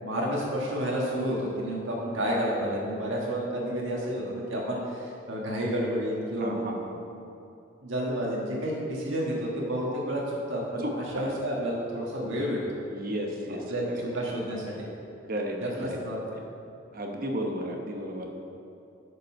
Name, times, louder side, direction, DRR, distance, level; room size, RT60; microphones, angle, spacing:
voice 1, 0.0-6.7 7.8-10.8 11.1-12.6 13.7-14.8 15.6-16.2, equal, 85° right, -4 dB, 1.5 m, -30 dB
voice 2, 6.4-6.9 10.8-11.3 12.9-14.3 15.3-16.0 16.9-18.3, equal, 45° right, 2 dB, 1.0 m, -34 dB
8.7 x 5.4 x 5.8 m, 2.7 s
head